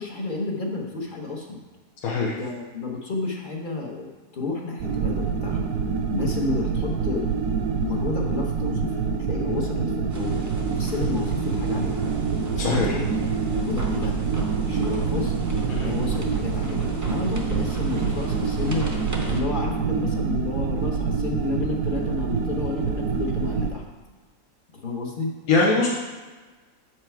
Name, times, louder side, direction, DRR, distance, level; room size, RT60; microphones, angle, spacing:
voice 1, 0.0-1.6 2.2-5.6 6.1-7.3 7.8-10.4 10.8-12.1 12.5-13.1 13.6-14.2 14.6-15.3 15.7-18.9 19.3-23.8 24.8-25.3, left 3 dB, 40° left, -1 dB, 1.0 m, -31 dB
voice 2, 2.0-2.3 12.6-12.9 15.7-15.9 25.5-25.9, left 3 dB, 70° left, -4 dB, 1.3 m, -21 dB
sound 1, 4.8-23.7, right 5 dB, 70° right, 1.0 m, -26 dB
sound 2, 10.1-19.4, right 2 dB, 25° right, 0.3 m, -35 dB
7.4 x 4.8 x 4.5 m, 1.3 s
omnidirectional pair, 1.6 m